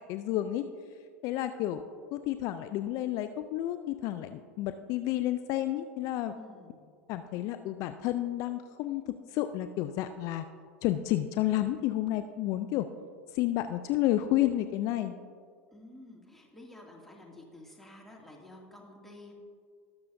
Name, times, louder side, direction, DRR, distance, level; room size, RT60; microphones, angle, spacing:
voice 1, 0.1-0.6 1.2-1.8 2.1-6.3 7.1-9.0 9.3-10.4 10.8-12.9 13.3-15.1, left 14 dB, 55° left, 10 dB, 0.4 m, -30 dB
voice 2, 6.3-6.8 15.7-19.3, left 1 dB, 5° left, -2 dB, 2.3 m, -51 dB
19.5 x 6.8 x 2.6 m, 2.1 s
hypercardioid pair, 90°, 7 cm